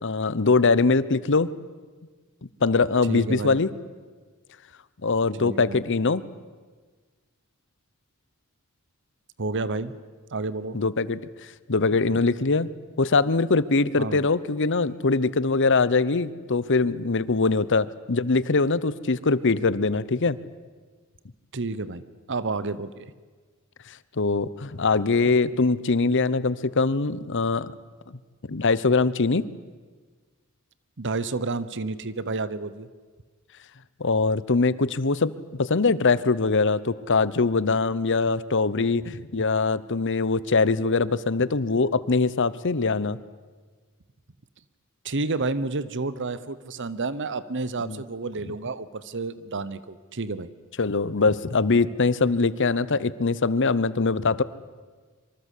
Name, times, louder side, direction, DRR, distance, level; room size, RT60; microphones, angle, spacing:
voice 1, 0.0-1.5 2.6-3.7 5.0-6.2 10.7-11.2 11.7-12.7 13.0-20.4 23.9-27.7 28.1-28.2 28.5-29.5 34.0-35.3 35.6-43.2 47.8-48.0 50.8-54.4, left 3 dB, 60° left, 17 dB, 0.9 m, -22 dB
voice 2, 3.1-3.6 5.4-5.8 9.4-9.9 10.3-10.8 14.0-14.2 21.5-22.0 22.3-23.1 31.0-32.9 45.0-50.5, right 3 dB, 55° right, 16 dB, 1.0 m, -30 dB
25.5 x 24.0 x 8.4 m, 1.4 s
head